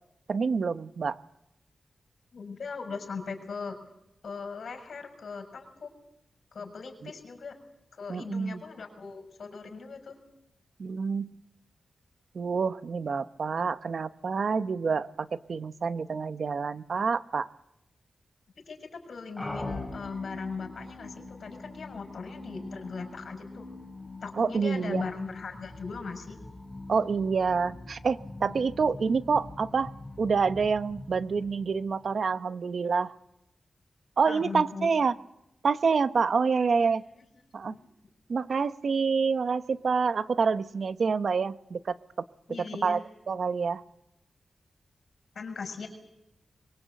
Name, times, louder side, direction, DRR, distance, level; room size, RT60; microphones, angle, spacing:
voice 1, 0.3-1.2 8.1-8.6 10.8-11.4 12.3-17.5 24.4-25.0 26.9-29.9 30.2-33.2 34.2-35.1 35.6-37.0 37.5-37.7 38.3-42.0 42.8-43.8, right 5 dB, 65° right, 12 dB, 0.9 m, -27 dB
voice 2, 2.3-3.8 4.2-5.9 6.5-7.5 7.9-10.2 18.6-23.7 24.2-26.4 34.3-34.9 36.5-36.9 37.6-37.9 42.5-43.0 45.3-45.9, left 5 dB, 75° left, 5 dB, 6.3 m, -39 dB
sound 1, 19.4-32.2, left 2 dB, 10° left, 5.9 m, -43 dB
24.0 x 23.0 x 8.2 m, 0.82 s
wide cardioid pair, 90°, 0 cm